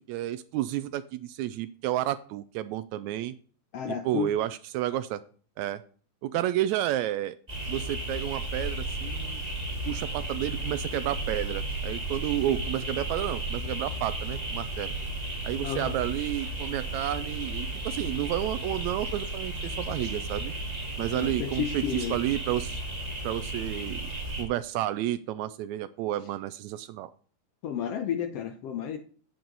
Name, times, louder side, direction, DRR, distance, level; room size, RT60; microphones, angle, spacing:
voice 1, 0.0-3.3 3.9-5.2 5.6-5.8 6.2-7.4 7.7-9.4 9.8-14.9 15.4-20.5 21.0-22.8 23.2-24.1 24.4-27.1, right 13 dB, 90° right, 13 dB, 1.6 m, -31 dB
voice 2, 3.7-4.3 15.6-16.0 21.1-22.2 27.6-29.0, left 8 dB, 80° left, 7 dB, 1.4 m, -32 dB
sound 1, 7.5-24.4, right 2 dB, 15° right, 1.8 m, -34 dB
8.6 x 7.7 x 4.0 m, 0.42 s
omnidirectional pair, 3.8 m